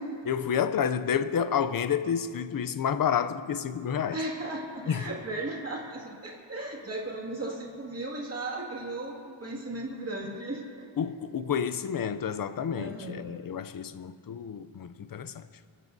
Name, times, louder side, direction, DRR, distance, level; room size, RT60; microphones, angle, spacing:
voice 1, 0.3-4.2 4.9-5.1 11.0-15.4, left 7 dB, 45° left, 0.5 m, -29 dB
voice 2, 4.1-10.9 12.7-13.3, right 2 dB, 30° right, 2.1 m, -36 dB
30.0 x 12.0 x 2.7 m
wide cardioid pair, 165°, 50 cm